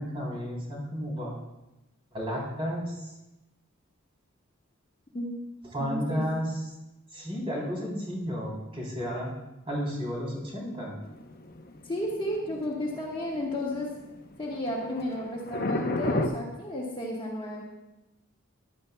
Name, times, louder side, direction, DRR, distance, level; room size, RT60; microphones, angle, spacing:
voice 1, 0.0-1.4 2.1-3.1 5.7-6.6 7.1-9.3 9.7-10.9, equal, 25° right, -3 dB, 3.6 m, -32 dB
voice 2, 5.8-6.2 11.8-13.9 14.4-17.6, left 1 dB, 25° left, -3 dB, 1.4 m, -32 dB
sound 1, 11.0-16.3, left 1 dB, 45° left, 0.9 m, -32 dB
15.0 x 11.0 x 2.3 m, 0.97 s
head